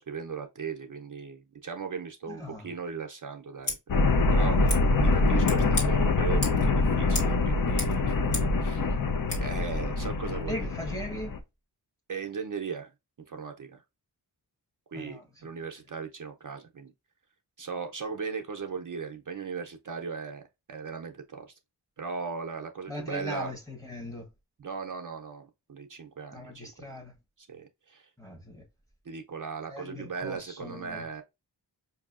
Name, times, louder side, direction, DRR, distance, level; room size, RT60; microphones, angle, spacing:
voice 1, 0.0-4.8 5.0-8.1 8.6-8.9 9.4-10.7 12.1-12.9 13.2-13.8 14.9-16.9 17.6-21.5 22.0-23.5 24.6-26.7 27.4-28.1 29.1-31.2, right 5 dB, 50° right, 0.5 m, -38 dB
voice 2, 2.3-2.7 10.5-11.4 14.9-15.2 22.9-24.3 26.3-27.2 28.2-28.7 29.7-31.0, left 1 dB, 10° left, 1.0 m, -39 dB
Scissors, 3.6-3.8 4.7-4.8 5.4-5.9 6.4-6.7 7.1-7.4 7.6-8.6 9.3-9.4, left 1 dB, 70° left, 1.7 m, -34 dB
sound 1, 3.9-11.4, left 3 dB, 55° left, 0.6 m, -25 dB
4.6 x 2.6 x 2.4 m
wide cardioid pair, 50°, 41 cm